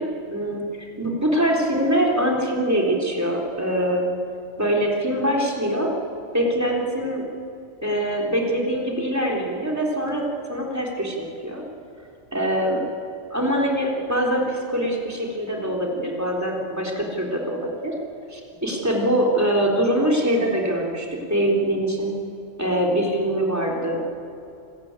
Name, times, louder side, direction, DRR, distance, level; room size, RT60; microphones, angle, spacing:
voice 1, 0.0-4.1 4.6-5.9 6.3-7.2 7.8-11.6 12.3-12.8 13.3-17.9 18.3-22.1 22.6-24.2, right 1 dB, 15° right, -1 dB, 3.7 m, -23 dB
27.5 x 15.0 x 9.0 m, 2.8 s
omnidirectional pair, 1.3 m